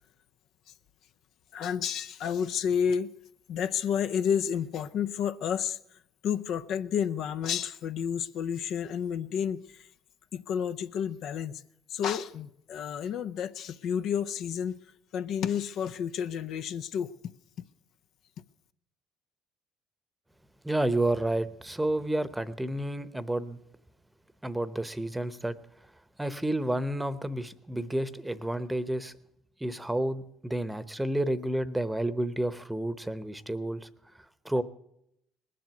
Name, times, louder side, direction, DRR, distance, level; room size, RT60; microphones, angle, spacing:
voice 1, 1.5-3.1 3.5-9.9 10.3-11.6 11.9-14.8 15.1-17.1, left 8 dB, 65° left, 0.6 m, -30 dB
voice 2, 20.6-23.6 24.4-25.6 26.2-29.1 29.6-33.9 34.4-34.6, right 1 dB, 10° right, 0.9 m, -30 dB
19.5 x 7.6 x 9.4 m
supercardioid pair, 85°, 0 cm